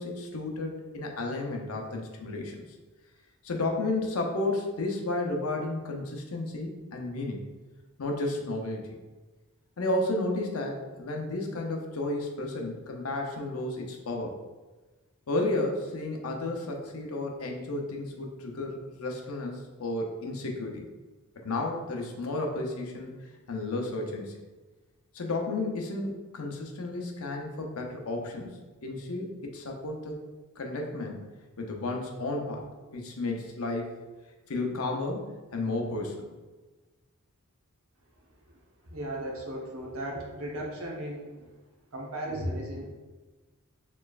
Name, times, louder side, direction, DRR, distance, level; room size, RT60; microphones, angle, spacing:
voice 1, 0.0-2.6 3.4-7.4 8.0-9.0 9.8-14.4 15.3-20.8 21.4-23.1 23.5-24.3 25.1-28.5 28.8-30.2 30.6-31.3 31.6-32.6 32.9-33.9 34.5-36.3, left 2 dB, 70° left, 1 dB, 0.6 m, -32 dB
voice 2, 38.9-41.5 41.9-42.9, right 1 dB, 70° right, -1 dB, 0.9 m, -35 dB
4.3 x 3.1 x 2.4 m, 1.2 s
head